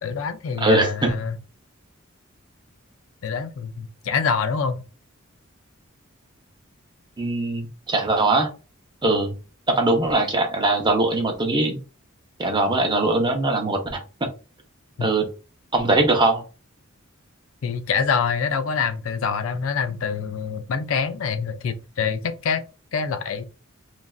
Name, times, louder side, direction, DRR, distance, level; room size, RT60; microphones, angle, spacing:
voice 1, 0.0-1.4 3.2-4.8 15.0-15.1 17.6-22.6 22.9-23.4, left 6 dB, 70° left, 0.4 m, -25 dB
voice 2, 0.6-1.1 7.2-8.5 9.0-9.3 9.7-11.8 12.4-14.0 15.0-15.3 15.7-16.4, right 2 dB, 20° right, 0.7 m, -21 dB
3.2 x 2.5 x 2.3 m
head